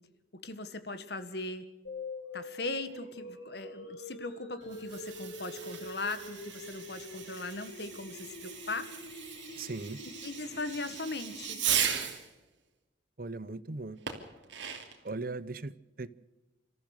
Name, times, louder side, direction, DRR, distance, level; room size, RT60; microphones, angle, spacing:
voice 1, 0.3-1.7 2.3-8.9 10.2-11.6, left 2 dB, 60° left, 11 dB, 1.7 m, -39 dB
sound 1, 1.8-11.8, left 2 dB, 85° left, 7.0 m, -45 dB
Fireworks, 4.6-12.3 14.1-15.1, right 9 dB, 80° right, 2.9 m, -37 dB
voice 2, 9.6-10.0 13.2-14.0 15.0-16.1, right 3 dB, 50° right, 16 dB, 0.8 m, -38 dB
28.0 x 14.0 x 6.7 m, 1.1 s
head